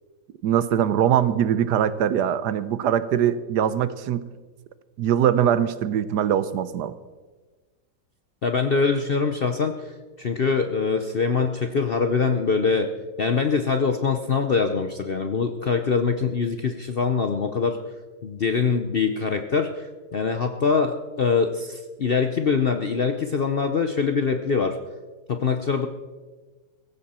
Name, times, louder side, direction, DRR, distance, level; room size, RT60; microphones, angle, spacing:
voice 1, 0.4-4.3 5.0-6.9, right 9 dB, 75° right, 14 dB, 1.3 m, -22 dB
voice 2, 8.4-9.8 10.2-12.9 13.2-17.8 18.2-24.8 25.3-25.9, left 5 dB, 50° left, 6 dB, 0.7 m, -23 dB
17.0 x 15.5 x 4.3 m, 1.3 s
omnidirectional pair, 1.9 m